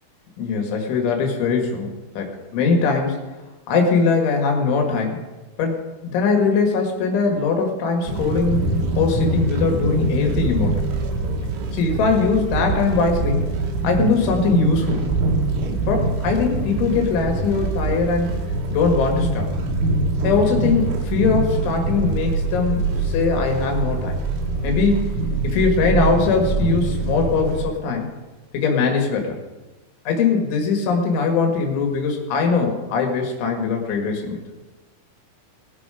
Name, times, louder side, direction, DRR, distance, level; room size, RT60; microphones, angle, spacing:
voice 1, 0.4-3.2 3.7-5.2 5.6-10.8 11.7-13.5 13.8-15.0 15.9-18.3 18.7-19.5 20.2-24.2 24.6-25.1 25.4-28.1 28.5-29.4 30.1-34.4, left 4 dB, 85° left, 2 dB, 4.3 m, -21 dB
sound 1, 8.1-27.6, right 3 dB, 70° right, 3.4 m, -24 dB
19.5 x 7.2 x 5.0 m, 1.2 s
omnidirectional pair, 5.3 m